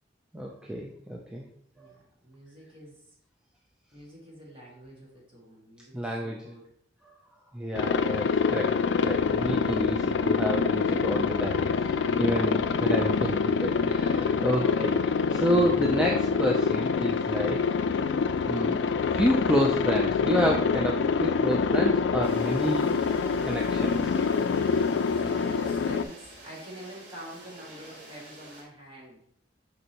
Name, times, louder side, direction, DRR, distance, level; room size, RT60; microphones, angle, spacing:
voice 1, 0.3-1.5 5.9-6.5 7.5-17.6 18.4-18.9 19.1-22.9 23.4-24.2, equal, 5° right, -1 dB, 0.5 m, -29 dB
voice 2, 1.7-3.2 3.9-6.7 25.1-29.2, right 1 dB, 30° right, -4 dB, 2.0 m, -47 dB
Aircraft, 7.8-26.0, left 5 dB, 70° left, 0.3 m, -26 dB
sound 1, 22.2-28.6, right 1 dB, 85° right, 1.8 m, -48 dB
6.6 x 5.3 x 2.9 m, 0.67 s
head